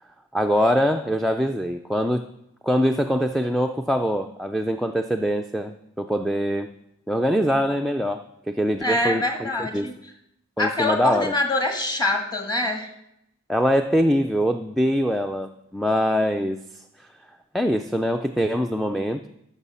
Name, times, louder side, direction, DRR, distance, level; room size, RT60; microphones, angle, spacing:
voice 1, 0.3-2.3 2.6-6.7 7.1-9.9 10.6-11.3 13.5-17.1 17.5-19.3, equal, ahead, 4 dB, 0.3 m, -23 dB
voice 2, 8.8-9.9 10.6-12.9, left 2 dB, 20° left, 4 dB, 1.7 m, -24 dB
14.5 x 6.3 x 5.5 m, 0.78 s
head